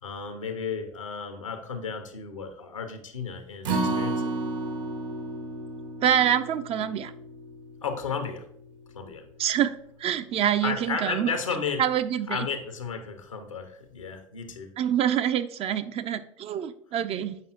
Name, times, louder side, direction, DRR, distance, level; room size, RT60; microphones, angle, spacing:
voice 1, 0.0-4.3 7.8-8.5 8.9-9.2 10.6-11.8 12.3-14.8, left 5 dB, 80° left, 7 dB, 0.9 m, -33 dB
Acoustic guitar, 3.6-9.9 10.3-10.4 10.9-11.0, right 2 dB, 70° right, 1.4 m, -33 dB
voice 2, 6.0-7.1 9.4-11.3 11.8-12.5 14.8-17.4, right 10 dB, 35° right, 11 dB, 0.5 m, -26 dB
7.6 x 5.3 x 2.9 m, 0.71 s
figure-of-eight pair, 65°, 17 cm